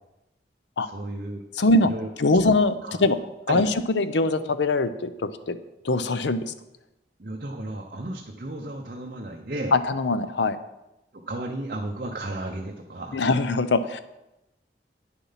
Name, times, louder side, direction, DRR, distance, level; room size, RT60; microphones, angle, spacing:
voice 1, 0.8-1.4 1.8-2.1 2.4-2.5 2.8-3.0 3.5-3.7 7.2-9.8 11.1-13.4, right 1 dB, 50° right, 1 dB, 0.8 m, -34 dB
voice 2, 1.6-1.9 2.2-2.8 3.0-3.2 3.5-5.6 5.8-6.5 9.7-10.6 13.1-14.0, left 2 dB, 90° left, 12 dB, 0.7 m, -22 dB
9.8 x 7.0 x 5.7 m, 0.94 s
head